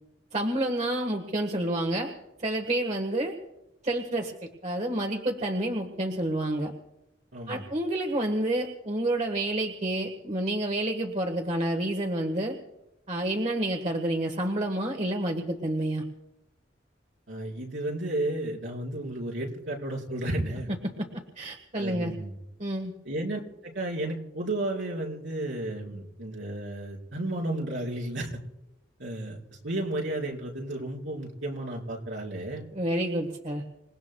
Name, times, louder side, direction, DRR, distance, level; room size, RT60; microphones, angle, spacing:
voice 1, 0.3-2.1 2.4-3.4 3.8-6.7 7.5-12.6 13.1-16.0 20.7-22.1 22.6-22.9 32.7-33.6, right 1 dB, 40° right, 3 dB, 1.4 m, -29 dB
voice 2, 7.3-7.6 17.3-20.7 21.8-22.3 23.1-28.3 29.0-29.4 29.6-32.6, right 1 dB, 85° right, -3 dB, 4.4 m, -33 dB
27.0 x 18.5 x 2.3 m, 0.91 s
head